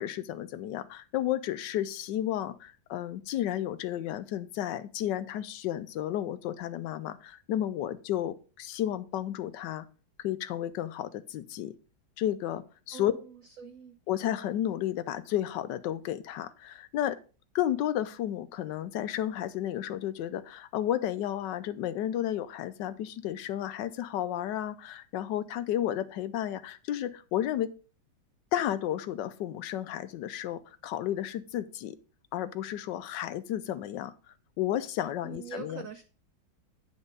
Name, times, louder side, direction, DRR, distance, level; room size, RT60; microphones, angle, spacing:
voice 1, 0.0-9.9 10.2-11.7 12.2-13.1 14.1-17.2 17.5-27.7 28.5-32.0 32.3-34.1 34.6-35.8, left 11 dB, 75° left, 14 dB, 1.2 m, -32 dB
voice 2, 12.9-14.0 35.2-36.0, right 7 dB, 85° right, 9 dB, 0.7 m, -44 dB
9.6 x 5.4 x 3.9 m, 0.36 s
omnidirectional pair, 2.1 m